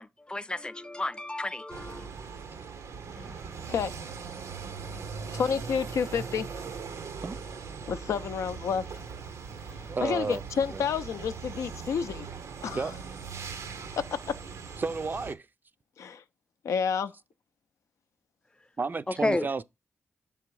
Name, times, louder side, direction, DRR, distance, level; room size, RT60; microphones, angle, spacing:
voice 1, 0.0-2.1 3.1-3.4 19.1-19.5, left 2 dB, 20° left, 0.5 m, -32 dB
sound 1, 1.7-15.3, right 5 dB, 85° right, 0.6 m, -40 dB
voice 2, 5.3-6.5 7.9-8.8 10.0-12.3 12.6-12.9 14.0-14.3 16.0-16.2 16.6-17.1, left 7 dB, 85° left, 0.4 m, -29 dB
voice 3, 9.8-10.4 10.7-10.8 12.7-12.9 14.8-15.5 18.8-19.6, right 4 dB, 40° right, 0.4 m, -32 dB
6.7 x 3.4 x 4.7 m
cardioid pair, 50°, 5 cm